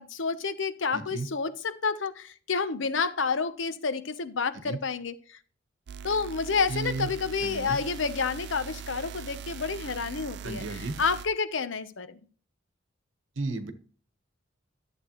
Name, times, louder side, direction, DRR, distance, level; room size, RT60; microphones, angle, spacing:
voice 1, 0.0-5.4 6.0-12.2, left 5 dB, 75° left, 0.9 m, -29 dB
voice 2, 0.9-1.3 4.6-4.8 6.7-7.1 7.4-7.8 10.4-11.0 13.4-13.7, right 3 dB, 80° right, 1.1 m, -33 dB
sound 1, 5.9-11.3, right 6 dB, 60° right, 0.4 m, -41 dB
11.5 x 7.8 x 3.1 m
head